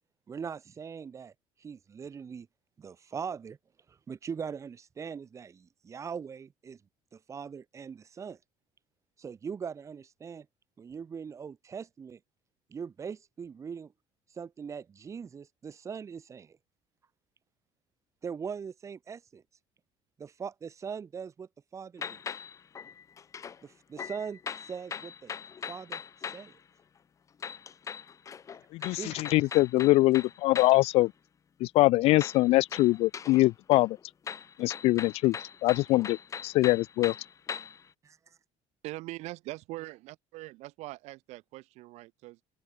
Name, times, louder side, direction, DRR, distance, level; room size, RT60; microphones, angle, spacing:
voice 1, 0.3-1.3 1.6-2.5 2.8-3.6 3.9-6.8 7.1-8.4 9.2-10.5 10.8-12.2 12.7-13.9 14.3-16.6 18.2-19.4 20.2-22.2 23.6-25.3 25.7-26.0 26.3-26.5 28.8-29.6 38.0-38.4, right 6 dB, 25° right, 2.6 m, -41 dB
sound 1, 22.0-23.6 24.0-26.5 27.4-30.9 32.2-33.5 33.7-37.9, left 7 dB, 25° left, 1.1 m, -41 dB
voice 2, 28.7-31.1 31.6-34.0 34.6-35.4 35.6-36.2 36.4-37.1, left 19 dB, 60° left, 0.4 m, -23 dB
voice 3, 38.8-42.4, right 20 dB, 75° right, 6.9 m, -42 dB
open air
cardioid pair, 150°, 12 cm